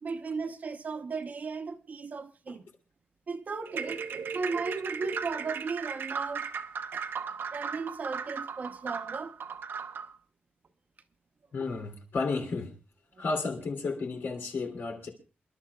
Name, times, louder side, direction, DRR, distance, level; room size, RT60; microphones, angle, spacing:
voice 1, 0.0-2.7 3.3-4.0 4.3-6.5 6.9-7.0 7.5-9.4 13.1-13.2, right 4 dB, 50° right, 0.9 m, -36 dB
sound 1, 3.7-10.1, right 6 dB, 85° right, 0.8 m, -37 dB
voice 2, 11.5-12.7 13.2-15.1, left 4 dB, 85° left, 2.9 m, -32 dB
28.0 x 12.0 x 2.3 m
wide cardioid pair, 175°, 4 cm